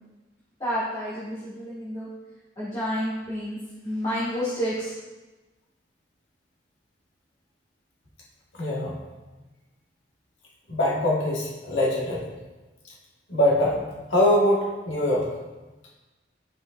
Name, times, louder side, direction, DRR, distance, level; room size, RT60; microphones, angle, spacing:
voice 1, 0.6-2.1 2.6-3.6 3.8-4.9, equal, 20° left, -11 dB, 2.1 m, -29 dB
voice 2, 8.6-8.9 10.7-12.3 13.3-15.3, left 1 dB, 85° left, -5 dB, 1.5 m, -23 dB
10.5 x 6.0 x 2.4 m, 1.2 s
head